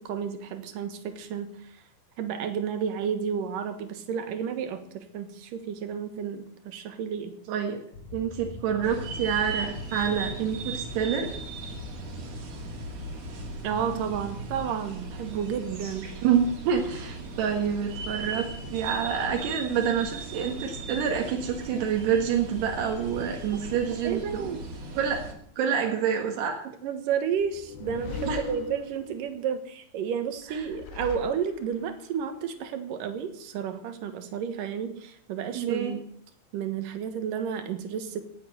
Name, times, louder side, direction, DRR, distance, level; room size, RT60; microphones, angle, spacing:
voice 1, 0.0-1.8 2.2-7.4 13.6-16.1 24.0-24.6 26.6-36.0 36.5-38.2, right 7 dB, 65° right, 9 dB, 2.8 m, -31 dB
voice 2, 7.5-7.8 8.1-11.3 16.2-24.5 25.0-25.2 25.6-26.6 28.3-28.4 35.5-35.9, right 7 dB, 85° right, 2 dB, 3.7 m, -27 dB
sound 1, 7.9-14.6, left 3 dB, 45° left, 2.4 m, -42 dB
sound 2, 8.8-25.3, right 3 dB, 45° right, 3.1 m, -38 dB
sound 3, 27.4-29.4 30.4-31.9, left 5 dB, 75° left, 3.7 m, -39 dB
17.5 x 8.0 x 8.0 m, 0.65 s
omnidirectional pair, 4.6 m